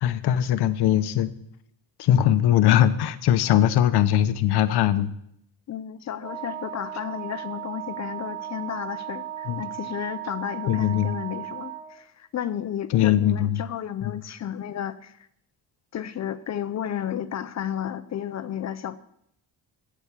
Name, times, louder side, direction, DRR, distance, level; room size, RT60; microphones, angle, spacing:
voice 1, 0.0-1.3 2.0-5.1 9.5-9.7 10.7-11.1 12.9-13.6 14.0-14.1, left 11 dB, 65° left, 12 dB, 0.8 m, -21 dB
voice 2, 5.7-15.3 15.9-19.0, left 10 dB, 40° left, 14 dB, 0.5 m, -33 dB
Wind instrument woodwind instrument, 6.2-11.9, right 10 dB, 60° right, 3.2 m, -36 dB
8.2 x 8.1 x 7.3 m, 0.75 s
cardioid pair, 120°, 41 cm